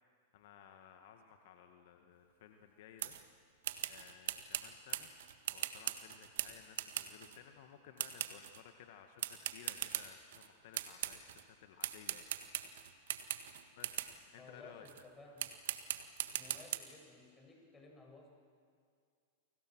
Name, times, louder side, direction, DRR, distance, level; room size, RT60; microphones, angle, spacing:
voice 1, 0.3-3.2 3.9-5.1 5.5-13.4 13.7-14.9, left 9 dB, 60° left, 5 dB, 1.9 m, -58 dB
sound 1, 3.0-3.2 3.6-7.4 8.0-8.6 9.2-10.5 10.7-11.4 11.8-14.2 14.9-15.0 15.4-16.8, right 11 dB, 70° right, 1.6 m, -40 dB
voice 2, 14.4-15.5 16.3-18.3, left 3 dB, 15° left, 1 dB, 7.2 m, -56 dB
30.0 x 24.5 x 6.3 m, 2.2 s
hypercardioid pair, 100°, 0 cm